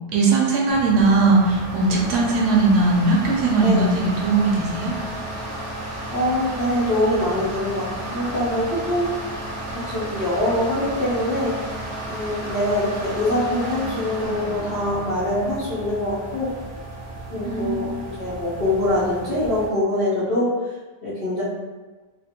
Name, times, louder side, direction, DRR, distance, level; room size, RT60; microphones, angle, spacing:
voice 1, 0.1-3.9 4.2-5.0 17.4-18.0, right 3 dB, 75° right, -2 dB, 1.1 m, -19 dB
sound 1, 0.7-19.7, right 1 dB, 40° right, 0.7 m, -33 dB
voice 2, 3.6-4.0 6.1-9.1 9.7-11.5 12.1-16.5 17.3-20.8 21.0-21.4, left 1 dB, 55° left, -11 dB, 0.6 m, -24 dB
2.8 x 2.4 x 2.7 m, 1.3 s
omnidirectional pair, 1.8 m